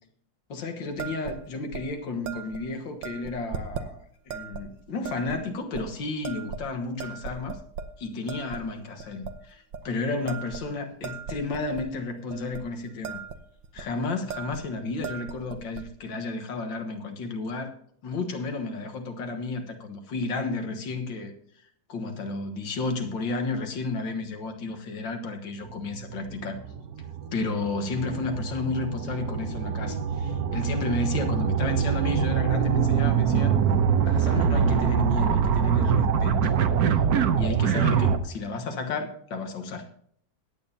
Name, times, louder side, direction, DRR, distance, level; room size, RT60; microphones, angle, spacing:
voice 1, 0.5-7.6 8.0-13.2 13.7-17.7 18.0-21.3 21.9-26.6 27.3-33.5 34.1-36.5 37.4-39.9, left 3 dB, 85° left, 2.1 m, -32 dB
sound 1, 1.0-1.4 1.7-1.9 2.2-2.6 3.0-3.9 4.3-4.6 5.0-5.4 5.7-5.8 6.2-6.7 7.0-7.9 8.3-8.6 9.0-9.3 9.7-9.9 10.3-11.9 12.3-12.6 12.9-13.4 13.6-13.9 14.3-14.6 14.9-15.8, right 6 dB, 80° right, 1.6 m, -37 dB
sound 2, 25.7-38.2, right 7 dB, 60° right, 1.2 m, -24 dB
22.5 x 8.9 x 2.8 m
omnidirectional pair, 2.0 m